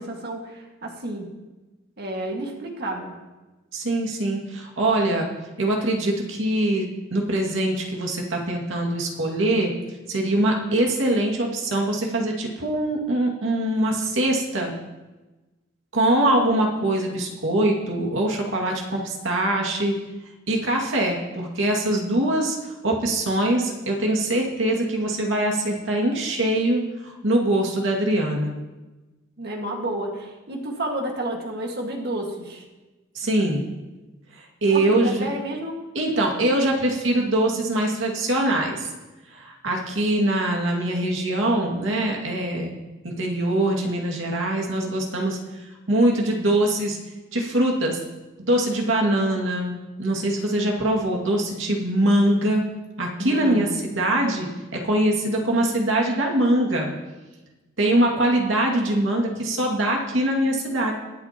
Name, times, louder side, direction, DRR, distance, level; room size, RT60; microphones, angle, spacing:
voice 1, 0.0-1.3 2.0-3.1 29.4-32.6 34.7-35.8 53.2-53.8, right 1 dB, 55° right, 1 dB, 1.8 m, -31 dB
voice 2, 3.7-5.3 5.6-9.7 10.1-14.8 15.9-20.0 20.5-22.6 22.8-28.6 33.1-33.6 34.4-35.3 35.9-38.9 39.3-42.7 43.0-45.4 45.9-47.0 47.3-48.0 48.4-52.6 53.0-54.5 54.7-56.9 57.8-60.9, right 1 dB, 80° right, -1 dB, 2.3 m, -23 dB
23.0 x 8.2 x 3.0 m, 1.1 s
head